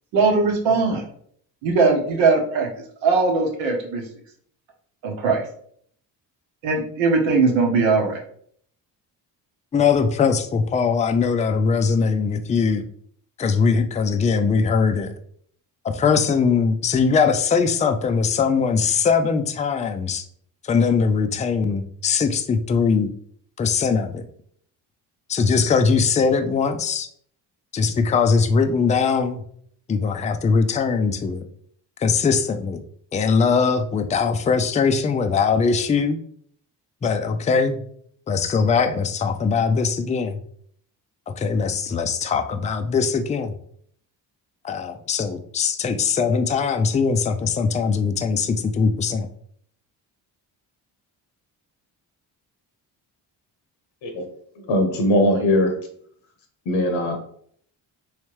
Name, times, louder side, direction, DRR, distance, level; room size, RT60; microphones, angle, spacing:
voice 1, 0.1-1.0 1.6-2.7 3.0-4.0 5.0-5.4 6.6-8.2, right 4 dB, 85° right, 1 dB, 1.0 m, -19 dB
voice 2, 9.7-12.8 13.4-15.1 15.8-20.2 20.7-23.1 23.6-24.3 25.3-27.1 27.7-29.4 29.9-31.4 32.0-32.8 33.1-36.2 37.0-37.8 38.3-40.4 41.4-43.5 44.6-49.3, left 5 dB, 15° left, 7 dB, 0.3 m, -21 dB
voice 3, 54.7-55.7 56.7-57.2, left 1 dB, 80° left, 4 dB, 1.0 m, -20 dB
3.2 x 3.1 x 3.1 m, 0.62 s
supercardioid pair, 60°, 45 cm